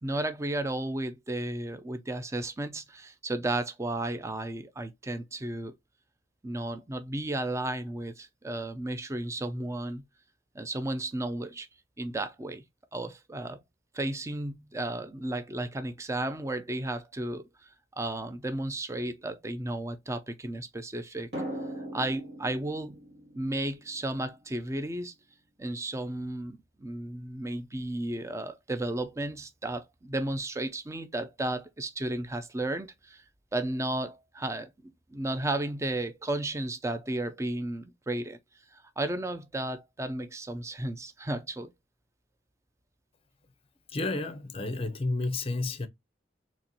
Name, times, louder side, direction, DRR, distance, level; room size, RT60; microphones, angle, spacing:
voice 1, 0.0-5.8 6.4-10.0 10.5-11.7 12.0-12.6 12.9-13.6 13.9-21.3 21.9-23.0 23.3-25.1 25.6-33.2 33.5-38.4 38.7-41.7, right 1 dB, 15° right, 0.4 m, -33 dB
Drum, 21.3-24.7, right 1 dB, 65° right, 1.7 m, -40 dB
voice 2, 43.9-45.9, left 2 dB, 30° left, 0.6 m, -31 dB
4.2 x 3.0 x 2.8 m
head